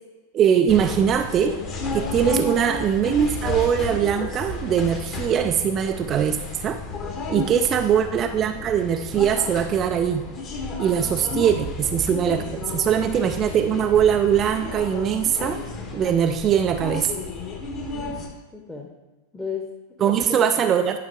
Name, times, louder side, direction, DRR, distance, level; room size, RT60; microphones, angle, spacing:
voice 1, 0.3-1.6 1.9-6.8 7.3-10.2 10.8-12.5 12.7-15.6 15.9-17.1 20.0-21.0, right 8 dB, 30° right, 7 dB, 0.4 m, -21 dB
sound 1, 0.7-18.3, left 2 dB, 30° left, 1.4 m, -32 dB
voice 2, 7.0-7.5 11.2-11.5 17.9-18.9 19.3-20.7, left 5 dB, 10° left, -1 dB, 1.1 m, -36 dB
11.0 x 5.5 x 3.7 m, 1.2 s
figure-of-eight pair, 90°, 0 cm